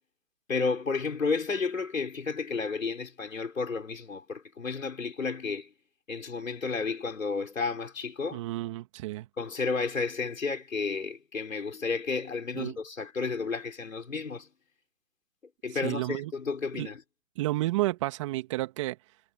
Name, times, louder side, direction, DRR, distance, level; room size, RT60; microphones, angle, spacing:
voice 1, 0.5-5.7 6.1-8.4 9.4-14.5 15.6-17.0, left 4 dB, 80° left, 5.3 m, -32 dB
voice 2, 8.3-9.3 12.5-12.8 15.8-16.3 16.8-16.9 17.4-19.0, right 18 dB, 25° right, 2.3 m, -31 dB
hypercardioid pair, 155°, 39 cm